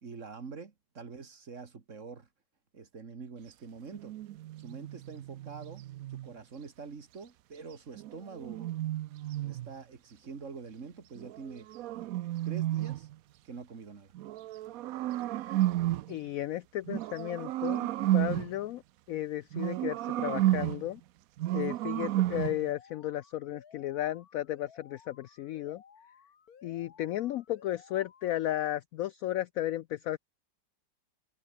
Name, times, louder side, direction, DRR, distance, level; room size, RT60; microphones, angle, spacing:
voice 1, 0.0-2.3 2.7-4.1 4.6-8.7 9.4-11.7 12.4-13.1 13.4-14.1, right 5 dB, 45° right, 2.0 m, -45 dB
sound 1, 3.9-6.3 8.0-9.7 11.2-13.2 14.1-16.2 16.9-18.6 19.5-20.9 21.4-22.7, right 14 dB, 70° right, 0.8 m, -32 dB
voice 2, 16.1-18.8 19.1-21.0 21.5-25.8 26.6-30.2, left 13 dB, 80° left, 0.7 m, -34 dB
Alarm, 22.5-28.5, left 7 dB, 55° left, 2.0 m, -58 dB
omnidirectional pair, 2.0 m